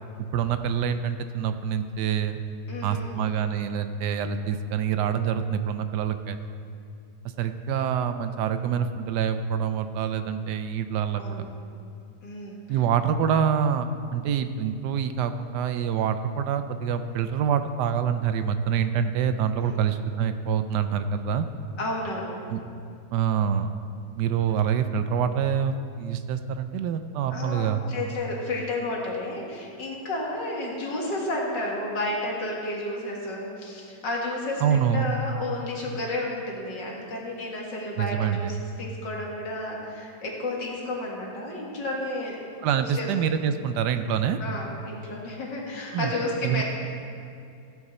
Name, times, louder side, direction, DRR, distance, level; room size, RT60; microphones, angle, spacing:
voice 1, 0.2-2.4 2.8-6.4 7.4-11.4 12.7-21.5 22.5-22.6 23.1-23.7 24.2-27.8 34.6-35.1 38.0-38.6 42.6-44.4 45.9-46.1 46.4-46.6, right 8 dB, 80° right, 10 dB, 1.2 m, -26 dB
voice 2, 2.7-3.1 11.1-11.5 12.2-12.8 19.6-19.8 21.8-22.4 27.3-42.4 42.7-43.1 44.4-46.6, left 2 dB, 80° left, -2 dB, 2.5 m, -32 dB
15.5 x 8.5 x 4.2 m, 2.6 s
omnidirectional pair, 1.9 m